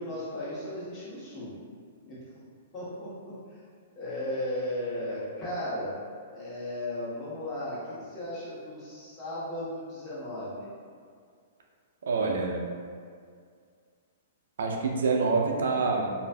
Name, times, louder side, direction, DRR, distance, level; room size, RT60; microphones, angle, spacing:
voice 1, 0.0-1.5 2.1-2.2 2.7-3.6 4.0-6.0 6.3-10.7, left 1 dB, 30° left, -9 dB, 1.0 m, -35 dB
voice 2, 12.0-12.6 14.6-16.1, right 4 dB, 80° right, 0 dB, 0.4 m, -26 dB
2.5 x 2.4 x 2.2 m, 2.1 s
hypercardioid pair, 140°, 0 cm